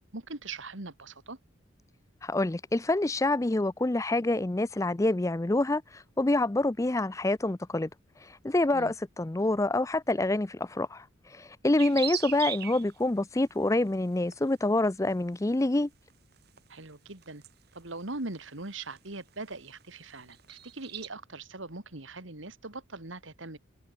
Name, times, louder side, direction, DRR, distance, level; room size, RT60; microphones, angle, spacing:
voice 1, 0.1-1.4 8.7-8.9 16.7-17.4 17.7-23.6, right 2 dB, 70° right, 2.6 m, -41 dB
voice 2, 2.2-7.9 8.2-15.9, left 2 dB, 15° left, 0.4 m, -27 dB
sound 1, 11.8-12.9 14.3-14.6 16.1-16.6 17.2-17.5 18.1-18.2 19.0-19.1 19.3-19.5 19.8-21.1, right 11 dB, 50° right, 2.5 m, -37 dB
head